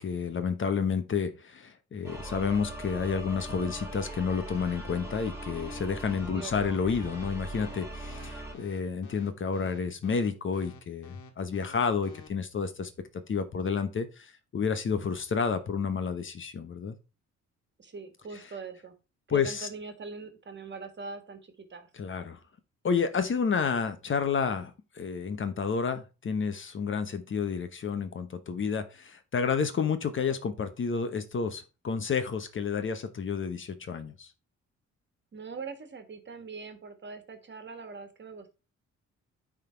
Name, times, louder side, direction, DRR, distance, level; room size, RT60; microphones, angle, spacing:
voice 1, 0.0-12.9 13.3-16.9 19.3-19.7 21.9-22.4 22.8-34.3, left 6 dB, 40° left, 10 dB, 1.0 m, -30 dB
sound 1, 2.0-8.5, right 1 dB, 10° right, 2.3 m, -40 dB
sound 2, 4.5-12.3, left 4 dB, 85° left, 1.6 m, -50 dB
voice 2, 6.3-6.8 17.8-18.9 19.3-21.9 35.3-38.5, right 4 dB, 35° right, 8 dB, 1.7 m, -42 dB
9.0 x 3.8 x 4.5 m, 0.30 s
cardioid pair, 90°, 30 cm